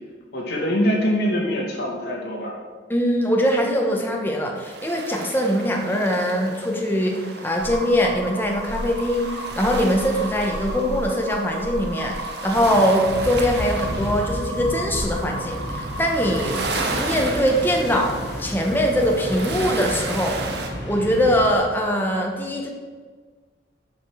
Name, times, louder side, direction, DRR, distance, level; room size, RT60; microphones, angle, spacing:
voice 1, 0.3-2.6, equal, 60° left, -3 dB, 2.5 m, -23 dB
voice 2, 2.9-20.4 20.8-22.7, equal, 10° left, 0 dB, 1.1 m, -22 dB
sound 1, 4.6-20.7, right 3 dB, 60° right, 1.2 m, -35 dB
sound 2, 7.6-17.0, right 1 dB, 90° right, 1.7 m, -34 dB
sound 3, 12.5-21.5, equal, 75° left, 2.4 m, -32 dB
8.9 x 5.2 x 6.4 m, 1.5 s
head